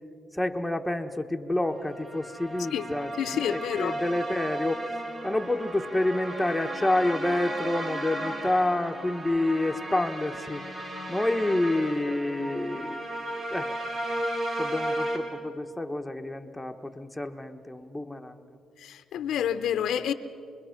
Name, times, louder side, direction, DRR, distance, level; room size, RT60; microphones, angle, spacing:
voice 1, 0.3-4.9 5.2-10.6 11.1-13.0 13.5-13.9 14.6-18.4, left 1 dB, 5° left, 4 dB, 1.1 m, -28 dB
sound 1, 1.8-15.2, right 1 dB, 35° right, 4.4 m, -35 dB
voice 2, 3.2-4.0 18.8-20.1, left 9 dB, 75° left, 11 dB, 0.8 m, -28 dB
27.0 x 21.5 x 5.9 m, 2.6 s
cardioid pair, 90°, 0 cm